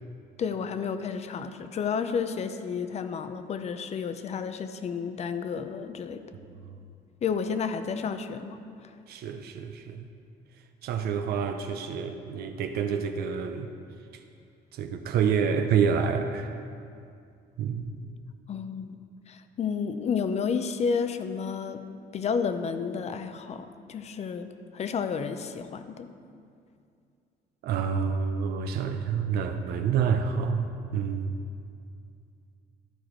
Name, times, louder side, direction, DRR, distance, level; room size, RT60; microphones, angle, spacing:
voice 1, 0.4-6.2 7.2-8.9 18.5-19.0 19.3-21.8 22.1-24.5 24.7-26.1, left 6 dB, 40° left, 10 dB, 0.5 m, -31 dB
voice 2, 9.1-10.1 10.8-13.7 14.7-16.5 17.6-18.0 27.6-31.4, right 6 dB, 70° right, 6 dB, 0.5 m, -28 dB
11.5 x 4.8 x 4.4 m, 2.4 s
cardioid pair, 110°, 17 cm